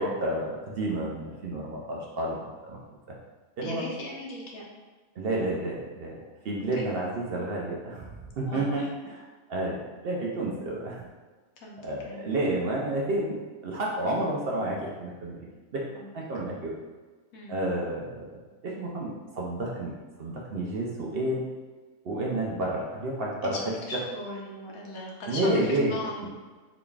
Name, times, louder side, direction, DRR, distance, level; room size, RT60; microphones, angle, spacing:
voice 1, 0.0-2.8 3.1-3.2 3.6-3.8 5.2-11.1 11.8-15.4 15.7-15.9 16.1-16.8 17.5-18.3 18.6-19.9 20.2-21.4 22.0-23.6 25.3-26.3, right 1 dB, 65° right, -2 dB, 0.6 m, -30 dB
voice 2, 3.6-4.6 6.7-6.8 8.5-8.9 11.6-11.8 12.0-12.2 15.9-16.1 17.3-17.5 23.4-26.2, left 2 dB, 75° left, -2 dB, 1.2 m, -38 dB
3.9 x 3.4 x 2.3 m, 1.3 s
omnidirectional pair, 1.5 m